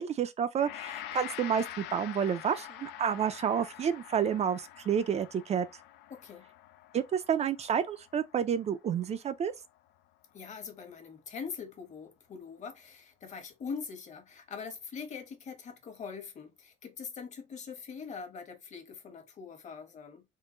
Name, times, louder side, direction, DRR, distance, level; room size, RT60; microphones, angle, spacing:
voice 1, 0.0-5.7 6.9-9.5, right 8 dB, 40° right, 0.4 m, -30 dB
Gong, 0.6-9.8, left 13 dB, 90° left, 0.5 m, -46 dB
voice 2, 6.1-6.5 10.3-20.2, left 6 dB, 45° left, 1.1 m, -43 dB
3.7 x 2.1 x 3.7 m
cardioid pair, 110°, 17 cm